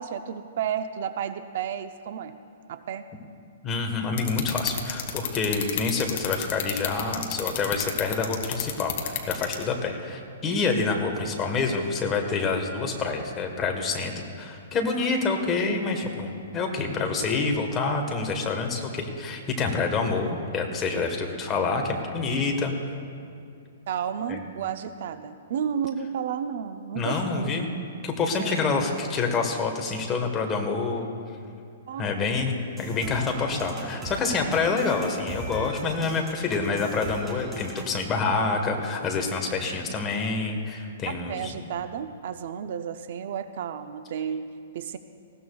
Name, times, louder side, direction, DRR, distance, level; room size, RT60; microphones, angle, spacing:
voice 1, 0.0-2.4 2.7-3.0 23.9-27.6 28.4-28.6 31.9-32.1 41.1-45.0, right 8 dB, 55° right, 10 dB, 0.5 m, -32 dB
voice 2, 3.6-22.7 24.3-24.4 26.9-27.7 28.0-31.1 32.0-41.5, left 4 dB, 20° left, 2 dB, 1.3 m, -27 dB
sound 1, 4.2-9.6, left 11 dB, 45° left, 1.5 m, -28 dB
sound 2, 32.8-38.0, equal, 10° right, 1.9 m, -39 dB
20.0 x 16.5 x 2.3 m, 2.4 s
hypercardioid pair, 160°, 0 cm